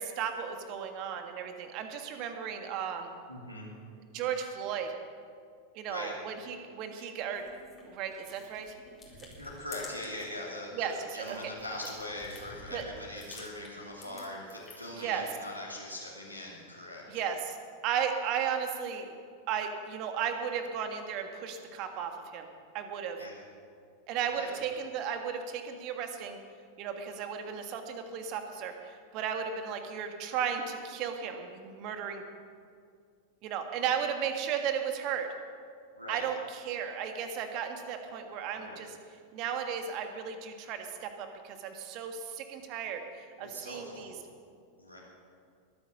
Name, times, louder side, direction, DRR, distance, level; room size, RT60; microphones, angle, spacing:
voice 1, 0.0-3.1 4.1-4.9 5.7-7.4 7.8-8.8 10.7-11.5 12.7-12.8 15.0-15.3 17.1-17.6 17.8-19.2 19.5-22.5 22.7-23.2 24.1-26.4 26.8-32.2 33.4-35.3 36.1-39.0 39.3-44.2, right 7 dB, 40° right, 6 dB, 1.7 m, -35 dB
voice 2, 3.3-3.7 5.8-6.1 9.4-17.2 23.2-23.3 24.3-24.5 35.9-36.2 38.5-38.8 43.4-44.1 44.8-45.0, left 1 dB, 90° right, -3 dB, 3.0 m, -41 dB
sound 1, 7.3-10.4 10.8-15.0, left 3 dB, 20° left, 4.4 m, -51 dB
22.0 x 9.6 x 6.2 m, 2.2 s
figure-of-eight pair, 90°, 0 cm